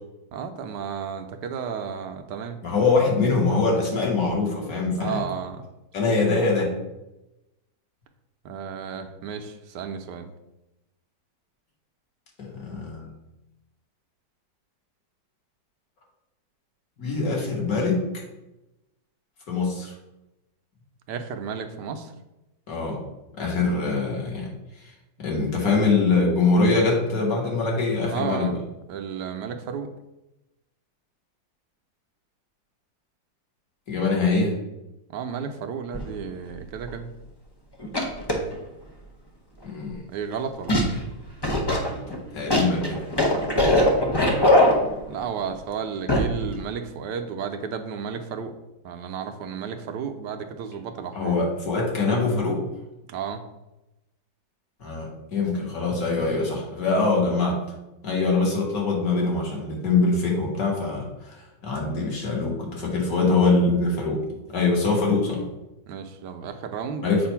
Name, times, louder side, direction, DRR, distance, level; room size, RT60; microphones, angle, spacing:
voice 1, 0.3-2.6 5.0-5.6 8.4-10.3 21.1-22.1 28.1-28.5 28.9-29.9 35.1-37.1 40.1-40.8 45.1-48.5 48.8-51.4 53.1-53.4 65.9-67.3, right 7 dB, 70° right, 7 dB, 1.2 m, -33 dB
voice 2, 2.6-5.2 5.9-6.8 12.4-13.1 17.0-18.1 19.5-19.9 22.7-23.0 23.4-24.5 25.2-28.6 33.9-34.6 39.6-40.0 42.3-43.0 51.1-52.6 54.8-57.6 58.0-64.2 64.5-65.4 67.0-67.3, left 3 dB, 50° left, -2 dB, 1.9 m, -23 dB
sound 1, 35.9-36.2 36.9-37.0 37.8-38.5 40.7-41.0 41.4-45.2 46.1-46.4 46.7-46.8, left 1 dB, 35° left, 0.4 m, -21 dB
7.5 x 2.5 x 5.6 m, 0.96 s
omnidirectional pair, 2.0 m